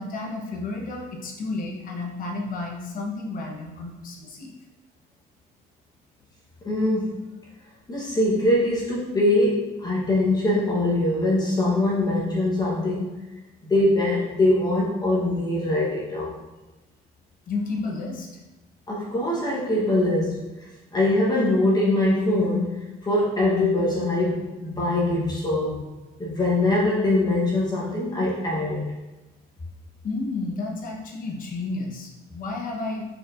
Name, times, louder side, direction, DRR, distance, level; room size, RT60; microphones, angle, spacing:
voice 1, 0.0-4.5 17.5-18.3 30.0-33.1, left 3 dB, 55° left, 0 dB, 1.0 m, -31 dB
voice 2, 6.6-7.4 7.9-13.1 13.7-16.4 18.9-20.4 20.9-25.8 26.2-28.9, left 1 dB, 25° left, -5 dB, 1.0 m, -23 dB
4.5 x 4.5 x 2.5 m, 1.1 s
cardioid pair, 110°, 17 cm